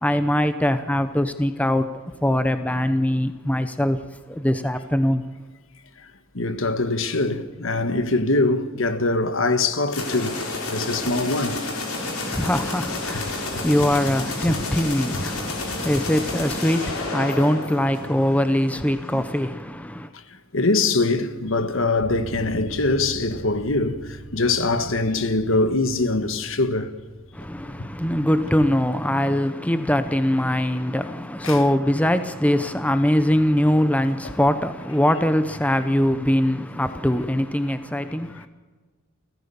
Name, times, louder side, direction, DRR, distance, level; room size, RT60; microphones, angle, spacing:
voice 1, 0.0-1.9 2.2-4.0 4.3-5.2 11.8-20.1 27.3-38.5, left 1 dB, 5° left, 0.8 m, -22 dB
voice 2, 6.3-10.4 10.7-11.6 13.1-13.2 13.5-13.7 14.4-14.5 15.1-15.2 19.1-19.2 20.5-26.9 31.4-31.6, left 2 dB, 65° left, 1.5 m, -23 dB
sound 1, 9.9-18.5, left 2 dB, 90° left, 5.0 m, -30 dB
Bass guitar, 22.0-28.2, right 3 dB, 45° right, 1.0 m, -41 dB
29.5 x 14.5 x 7.1 m
head